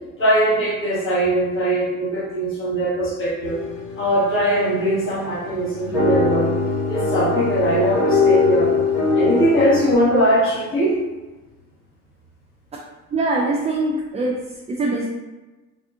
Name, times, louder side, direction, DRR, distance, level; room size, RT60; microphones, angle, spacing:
voice 1, 0.2-3.6 4.0-6.5 6.9-8.7 9.1-11.0, right 1 dB, 45° left, -7 dB, 1.3 m, -20 dB
sound 1, 3.4-9.9, left 4 dB, 75° left, 1.1 m, -22 dB
voice 2, 13.1-14.4 14.7-15.0, right 2 dB, 20° right, -3 dB, 0.4 m, -22 dB
3.5 x 2.3 x 2.6 m, 1.2 s
cardioid pair, 90°, 30 cm